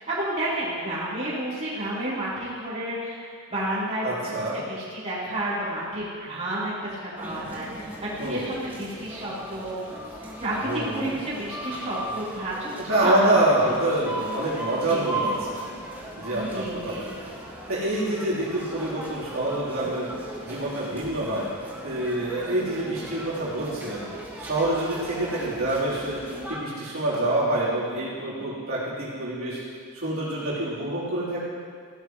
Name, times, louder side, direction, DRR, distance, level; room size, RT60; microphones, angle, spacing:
voice 1, 0.1-9.8 10.2-12.7 13.0-13.7 14.9-15.3 16.3-17.1, right 1 dB, 30° right, -10 dB, 3.9 m, -30 dB
voice 2, 4.0-4.6 8.2-8.5 10.6-11.1 12.9-15.6 16.2-17.2 17.7-20.1 20.4-21.5 21.8-24.1 24.4-26.2 26.5-29.6 29.9-31.4, right 1 dB, 75° right, -9 dB, 3.8 m, -26 dB
sound 1, 7.2-26.6, right 1 dB, 10° right, 2.0 m, -37 dB
16.5 x 11.5 x 3.2 m, 2.1 s
head